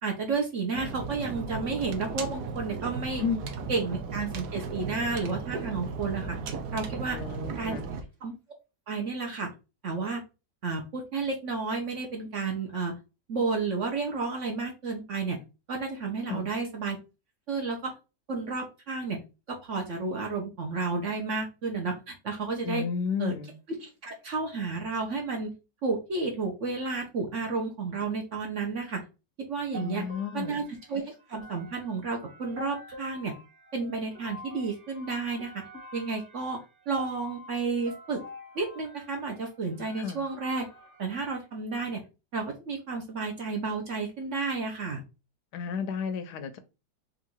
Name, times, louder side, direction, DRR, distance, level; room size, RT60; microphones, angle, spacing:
voice 1, 0.0-3.2 3.7-6.4 6.7-7.2 7.6-7.8 8.2-8.3 8.9-9.5 9.8-10.2 10.6-12.9 13.3-15.4 15.7-17.0 17.5-17.9 18.3-19.2 19.5-22.8 23.2-23.3 23.8-25.5 25.8-29.0 29.4-30.1 30.3-30.6 30.9-33.3 33.7-35.6 35.9-36.6 36.9-38.2 38.5-40.7 41.0-42.0 42.3-45.0, right 4 dB, 55° right, 1.0 m, -31 dB
sound 1, 0.7-8.0, right 5 dB, 70° right, 1.2 m, -36 dB
voice 2, 3.2-3.5 7.1-7.9 16.3-16.5 22.6-23.5 29.7-30.6 40.0-40.2 45.5-46.6, left 6 dB, 75° left, 1.1 m, -32 dB
sound 2, 29.7-41.0, equal, 30° right, 1.8 m, -47 dB
3.9 x 2.5 x 4.4 m
omnidirectional pair, 1.9 m